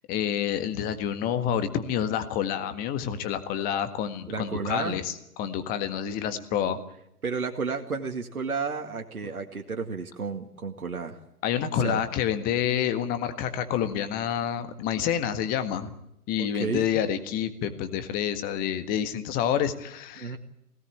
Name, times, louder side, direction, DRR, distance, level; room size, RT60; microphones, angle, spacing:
voice 1, 0.1-5.1 5.4-6.8 11.4-15.9 16.3-20.4, left 9 dB, 20° left, 10 dB, 1.6 m, -28 dB
voice 2, 4.3-5.0 6.0-6.8 7.2-11.2 11.8-12.0 16.4-16.9 20.2-20.4, right 4 dB, 70° right, 3 dB, 2.2 m, -32 dB
24.0 x 18.5 x 8.6 m, 0.82 s
figure-of-eight pair, 120°, 45 cm